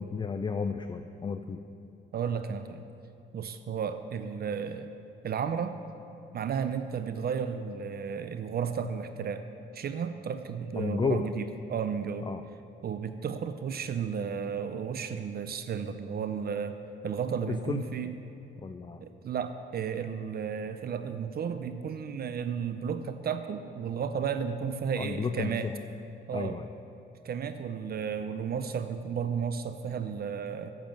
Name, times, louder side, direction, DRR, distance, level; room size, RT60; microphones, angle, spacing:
voice 1, 0.0-1.6 10.8-11.3 12.2-12.4 17.5-17.8 18.6-19.0 25.0-25.7 26.3-26.7, left 5 dB, 25° left, 8 dB, 0.4 m, -32 dB
voice 2, 2.1-2.8 3.3-4.9 5.2-5.7 6.3-9.4 9.7-12.3 12.8-16.8 17.0-18.1 19.0-25.7 26.3-26.6 27.2-30.7, right 7 dB, 50° right, 10 dB, 0.6 m, -33 dB
8.9 x 7.4 x 7.4 m, 2.8 s
cardioid pair, 90°, 20 cm